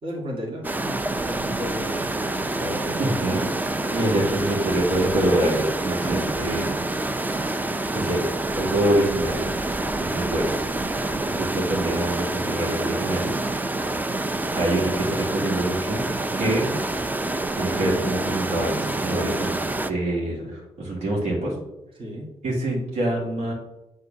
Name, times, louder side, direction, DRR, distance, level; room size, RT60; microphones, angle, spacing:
voice 1, 0.0-3.1 22.0-22.3, equal, 50° right, -3 dB, 2.4 m, -34 dB
sound 1, 0.6-19.9, right 2 dB, 15° right, 0.5 m, -27 dB
voice 2, 3.0-3.4 3.9-6.7 7.9-8.2 8.6-9.4 9.9-10.5 11.2-13.3 14.6-16.0 16.4-16.7 17.6-19.6 19.9-21.6 22.4-23.5, right 1 dB, 75° right, -3 dB, 2.6 m, -25 dB
6.9 x 3.7 x 6.3 m, 0.92 s
cardioid pair, 80°, 11 cm